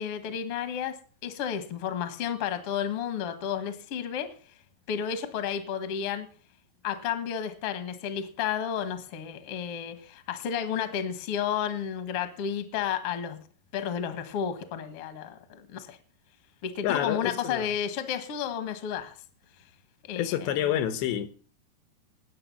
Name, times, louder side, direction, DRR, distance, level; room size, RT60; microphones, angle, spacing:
voice 1, 0.0-4.3 4.9-6.3 6.8-13.4 13.7-16.0 16.6-19.1 20.0-20.5, left 8 dB, 60° left, 1.5 m, -32 dB
voice 2, 16.8-17.7 20.2-21.3, left 11 dB, 80° left, 3.2 m, -28 dB
19.0 x 6.9 x 5.6 m
omnidirectional pair, 4.9 m